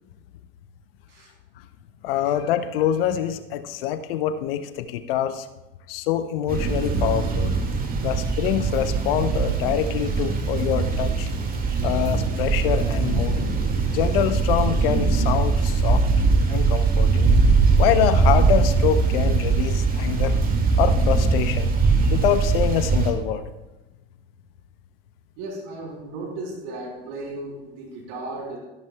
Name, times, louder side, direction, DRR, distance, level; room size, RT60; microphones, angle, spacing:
voice 1, 2.0-5.5 5.9-7.5 8.0-11.3 11.8-13.4 13.9-16.0 16.5-17.3 17.8-20.3 20.8-21.7 22.1-23.5, left 10 dB, 70° left, 11 dB, 0.6 m, -25 dB
sound 1, 6.5-23.1, right 4 dB, 30° right, 2.0 m, -21 dB
voice 2, 25.4-28.6, right 2 dB, 60° right, -1 dB, 3.1 m, -35 dB
13.0 x 12.5 x 2.2 m, 1.1 s
hypercardioid pair, 75°, 30 cm